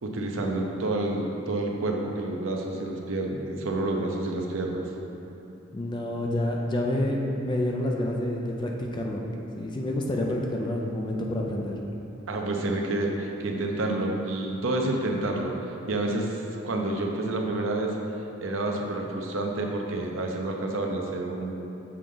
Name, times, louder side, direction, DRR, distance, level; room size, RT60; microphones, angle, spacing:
voice 1, 0.0-4.8 12.3-15.5 15.9-18.0 18.4-21.5, right 2 dB, 85° right, 1 dB, 0.7 m, -29 dB
voice 2, 5.7-9.2 9.6-11.7, left 1 dB, 25° left, 0 dB, 0.4 m, -28 dB
6.8 x 3.7 x 3.8 m, 3.0 s
head